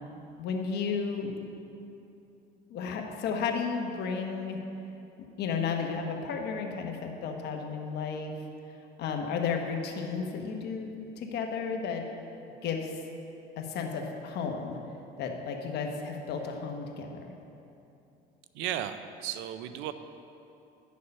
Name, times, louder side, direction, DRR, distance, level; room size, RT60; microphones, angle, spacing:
voice 1, 0.4-1.4 2.7-4.6 5.4-8.3 9.0-10.9 11.2-12.0 12.6-12.9 13.6-14.8 15.2-17.3, left 5 dB, 60° left, 2 dB, 1.1 m, -33 dB
voice 2, 18.5-19.9, right 11 dB, 90° right, 11 dB, 0.5 m, -34 dB
9.6 x 6.5 x 5.4 m, 2.8 s
cardioid pair, 120°, 19 cm